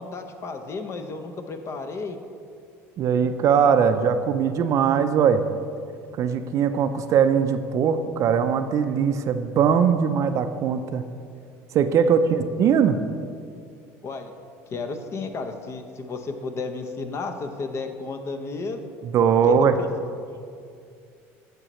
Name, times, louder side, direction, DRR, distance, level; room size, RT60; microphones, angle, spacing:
voice 1, 0.0-2.2 12.0-12.1 14.0-14.3 14.7-18.8 19.4-19.9 20.3-20.5, left 3 dB, 40° left, 7 dB, 0.7 m, -33 dB
voice 2, 3.0-5.4 6.2-11.0 11.7-13.0 19.0-19.8, right 7 dB, 50° right, 9 dB, 0.5 m, -20 dB
10.0 x 6.7 x 3.1 m, 2.3 s
supercardioid pair, 105°, 7 cm